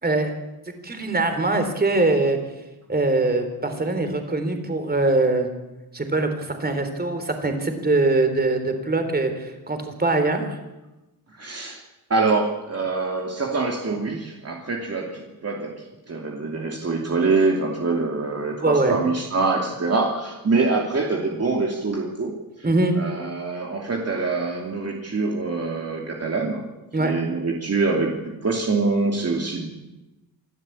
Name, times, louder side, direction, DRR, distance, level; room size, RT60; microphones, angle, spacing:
voice 1, 0.0-0.3 0.8-2.4 2.9-5.5 5.9-10.6 18.6-18.9 22.6-23.0 26.9-27.1, right 2 dB, 25° right, 7 dB, 3.7 m, -22 dB
voice 2, 11.3-11.8 12.1-22.7 23.0-26.7 27.0-29.7, right 3 dB, 40° right, 0 dB, 2.8 m, -25 dB
27.0 x 13.0 x 8.7 m, 1.1 s
wide cardioid pair, 120°, 37 cm